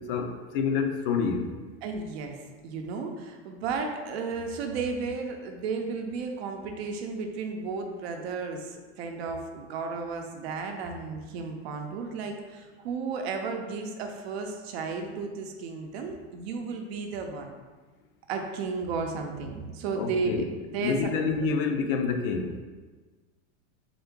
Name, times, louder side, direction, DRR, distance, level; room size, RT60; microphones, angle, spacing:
voice 1, 0.1-1.4 20.0-20.5 20.8-22.6, left 5 dB, 50° left, 4 dB, 0.5 m, -28 dB
voice 2, 1.8-17.5 18.3-20.4 20.7-21.1 21.4-21.5, right 4 dB, 60° right, 4 dB, 0.7 m, -33 dB
3.8 x 3.5 x 3.7 m, 1.3 s
supercardioid pair, 175°, 35 cm